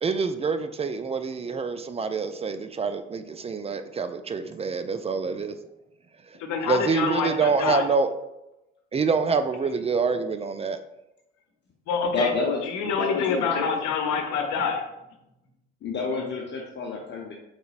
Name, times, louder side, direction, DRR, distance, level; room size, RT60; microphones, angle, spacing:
voice 1, 0.0-5.6 6.3-6.4 6.6-8.1 8.9-10.8, right 5 dB, 20° right, 9 dB, 0.3 m, -26 dB
voice 2, 6.4-7.9 11.9-12.3 12.6-14.8, left 6 dB, 65° left, 5 dB, 0.9 m, -26 dB
voice 3, 12.1-13.7 15.8-17.3, left 3 dB, 35° left, -1 dB, 0.8 m, -29 dB
4.7 x 3.9 x 2.4 m, 0.89 s
hypercardioid pair, 65°, 31 cm